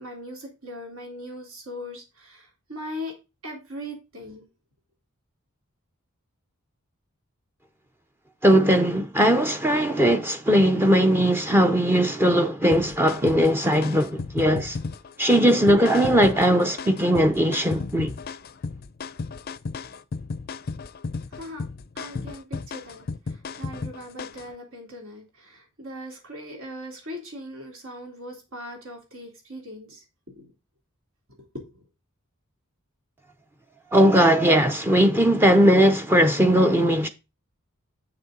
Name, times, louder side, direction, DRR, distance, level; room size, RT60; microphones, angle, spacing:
voice 1, 0.0-3.1 3.4-4.5 21.3-21.7 22.0-30.0 30.3-30.5 31.5-31.8, left 1 dB, 75° right, 3.5 m, -39 dB
voice 2, 8.4-14.8 15.2-18.1 33.9-37.1, equal, 10° right, 0.6 m, -19 dB
sound 1, 12.7-24.5, left 4 dB, 45° left, 0.5 m, -34 dB
7.7 x 6.7 x 3.8 m
head